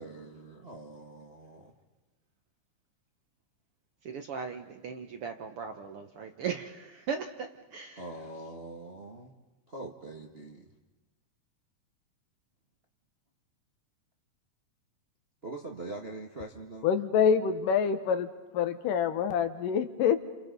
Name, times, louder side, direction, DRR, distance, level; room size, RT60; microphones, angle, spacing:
voice 1, 0.0-1.7 8.0-9.3 9.7-10.7 15.4-16.9, right 2 dB, 35° right, 1 dB, 0.9 m, -43 dB
voice 2, 4.0-8.0, right 6 dB, 65° right, 5 dB, 1.5 m, -38 dB
voice 3, 16.8-18.3 18.5-20.2, left 7 dB, 85° left, 9 dB, 2.9 m, -26 dB
30.0 x 28.0 x 5.4 m, 1.1 s
omnidirectional pair, 3.7 m